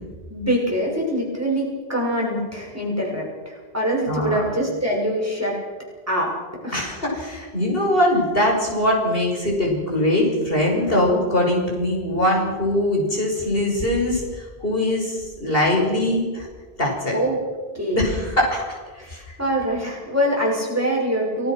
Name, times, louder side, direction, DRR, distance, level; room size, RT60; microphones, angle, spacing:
voice 1, 0.3-5.6 6.1-6.3 6.6-6.9 17.1-17.4 17.7-18.0 19.0-21.5, equal, 15° right, -2 dB, 6.4 m, -24 dB
voice 2, 4.1-4.4 6.7-14.2 14.6-16.5 16.8-17.2 17.9-18.8 19.1-19.4, left 1 dB, 60° left, -2 dB, 6.0 m, -22 dB
29.5 x 19.0 x 6.2 m, 1.4 s
omnidirectional pair, 1.1 m